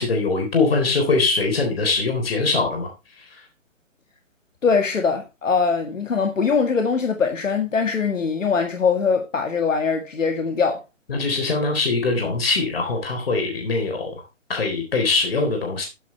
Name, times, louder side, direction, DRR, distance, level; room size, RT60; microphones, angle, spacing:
voice 1, 0.0-2.9 3.2-3.4 11.1-14.1 14.5-15.9, left 3 dB, 50° left, 3.7 m, -22 dB
voice 2, 4.6-10.8, left 5 dB, 75° left, 2.0 m, -22 dB
12.0 x 9.2 x 3.2 m
hypercardioid pair, 175°, 39 cm